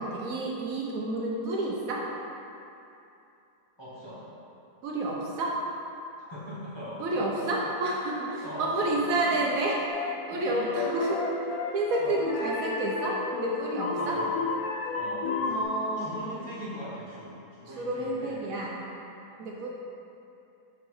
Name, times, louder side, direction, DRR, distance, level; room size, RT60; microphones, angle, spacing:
voice 1, 0.0-2.1 4.8-5.6 7.0-9.8 10.3-11.2 11.7-14.2 15.5-16.1 17.7-18.7 19.4-19.7, right 2 dB, 70° right, -2 dB, 1.0 m, -29 dB
voice 2, 3.8-4.2 6.2-7.5 8.1-9.0 9.3-9.4 10.3-11.1 12.0-12.1 14.0-14.3 14.9-18.4 19.3-19.5, equal, 20° left, -10 dB, 1.0 m, -41 dB
sound 1, 9.9-10.3 10.8-15.6, left 4 dB, 75° left, 1.1 m, -32 dB
5.9 x 4.2 x 4.5 m, 2.7 s
omnidirectional pair, 1.7 m